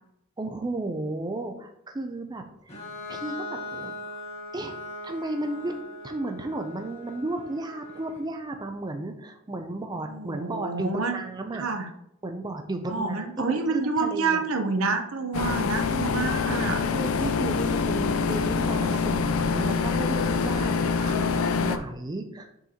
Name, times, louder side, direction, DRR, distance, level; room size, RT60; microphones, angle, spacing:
voice 1, 0.4-2.7 3.1-4.1 4.5-4.8 5.0-5.7 6.0-11.6 12.2-14.4 16.8-20.7 21.1-22.5, right 2 dB, 20° right, 5 dB, 0.5 m, -33 dB
Bowed string instrument, 2.7-8.3, left 2 dB, 30° left, 1.3 m, -40 dB
voice 2, 10.1-11.2 11.5-11.9 12.9-16.8 18.0-18.3 21.0-21.2, right 4 dB, 75° right, 6 dB, 0.8 m, -28 dB
sound 1, 15.3-21.8, left 5 dB, 80° left, 0.5 m, -25 dB
6.4 x 5.1 x 2.9 m, 0.79 s
head